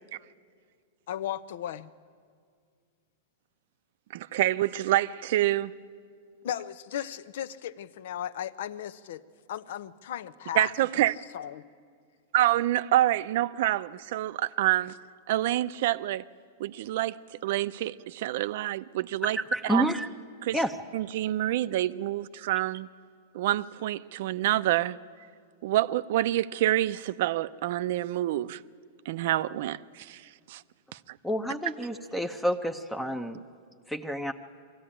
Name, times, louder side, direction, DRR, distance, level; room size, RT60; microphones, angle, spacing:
voice 1, 1.1-1.9 6.4-9.2 9.5-11.0 11.3-11.6, left 10 dB, 70° left, 0.7 m, -36 dB
voice 2, 4.1-5.7 10.5-11.1 12.3-15.0 15.3-16.2 16.6-17.2 17.4-19.4 19.7-19.9 20.4-20.6 20.9-22.9 23.3-25.0 25.6-28.6 29.1-30.2 30.5-30.6 31.1-31.2, right 14 dB, 60° right, 0.6 m, -27 dB
voice 3, 19.3-20.1 20.5-20.8 31.2-33.4 33.9-34.3, equal, 5° left, 0.7 m, -29 dB
23.0 x 14.5 x 10.0 m
supercardioid pair, 145°, 0 cm